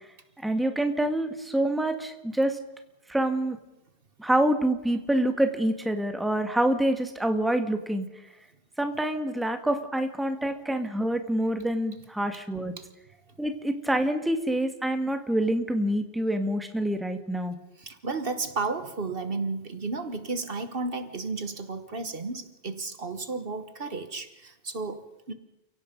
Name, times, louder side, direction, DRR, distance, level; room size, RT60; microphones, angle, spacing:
voice 1, 0.4-2.6 3.1-3.6 4.2-8.1 8.8-12.7 13.4-17.6, right 1 dB, ahead, 6 dB, 1.6 m, -26 dB
voice 2, 17.8-25.3, right 3 dB, 60° right, 9 dB, 1.5 m, -33 dB
30.0 x 17.0 x 5.3 m, 0.94 s
omnidirectional pair, 1.1 m